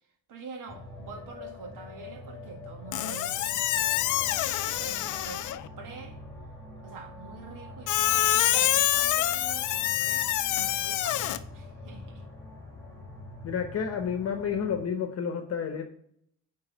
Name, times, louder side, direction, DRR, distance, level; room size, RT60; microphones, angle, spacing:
voice 1, 0.3-6.2 6.8-12.2, right 4 dB, 75° right, 3 dB, 1.8 m, -46 dB
sound 1, 0.7-14.8, left 1 dB, 10° left, 2.7 m, -44 dB
Squeak, 2.9-5.7 7.9-11.4, left 13 dB, 65° left, 0.5 m, -26 dB
voice 2, 13.4-15.8, left 7 dB, 50° left, 6 dB, 1.0 m, -30 dB
8.7 x 3.8 x 5.0 m, 0.69 s
cardioid pair, 130°, 32 cm